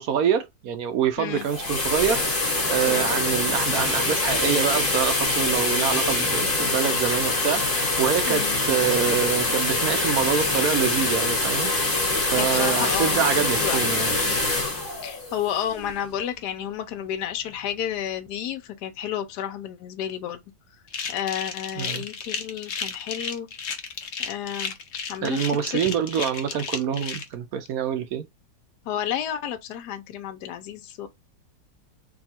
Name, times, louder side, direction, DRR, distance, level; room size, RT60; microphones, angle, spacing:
voice 1, 0.0-12.0 12.3-14.2 21.8-22.0 25.2-28.3, right 8 dB, 70° right, 0.9 m, -26 dB
sound 1, 1.3-16.2, left 2 dB, 35° left, 1.3 m, -24 dB
voice 2, 8.3-8.6 12.4-13.9 15.0-20.4 21.1-23.5 24.2-24.8 25.1-25.9 28.9-31.1, left 10 dB, 70° left, 1.2 m, -31 dB
sound 2, 20.9-27.2, left 6 dB, 55° left, 0.8 m, -33 dB
3.6 x 2.3 x 4.2 m
omnidirectional pair, 1.8 m